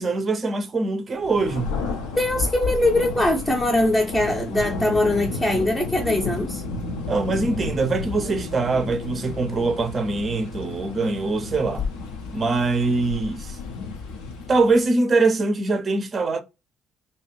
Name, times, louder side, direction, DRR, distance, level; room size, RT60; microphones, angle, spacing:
voice 1, 0.0-1.8 7.1-11.9 12.3-13.6 14.5-16.4, right 3 dB, 35° right, 0.6 m, -23 dB
Thunder, 1.2-14.8, left 4 dB, 70° left, 0.5 m, -32 dB
voice 2, 2.2-6.6, left 1 dB, 15° left, 0.6 m, -22 dB
2.7 x 2.3 x 3.0 m
figure-of-eight pair, 45°, 0 cm